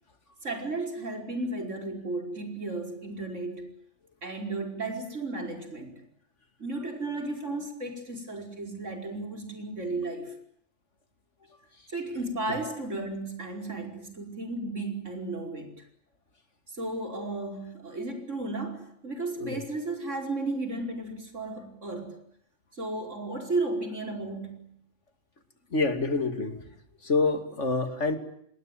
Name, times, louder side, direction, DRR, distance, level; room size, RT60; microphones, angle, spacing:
voice 1, 0.4-3.7 4.2-6.0 6.6-10.4 11.9-15.7 16.8-22.2 22.8-24.7, right 2 dB, 85° right, 4 dB, 5.5 m, -34 dB
voice 2, 25.7-26.6 27.0-28.2, left 3 dB, 75° left, 9 dB, 3.0 m, -27 dB
27.5 x 20.5 x 9.1 m, 0.70 s
omnidirectional pair, 1.2 m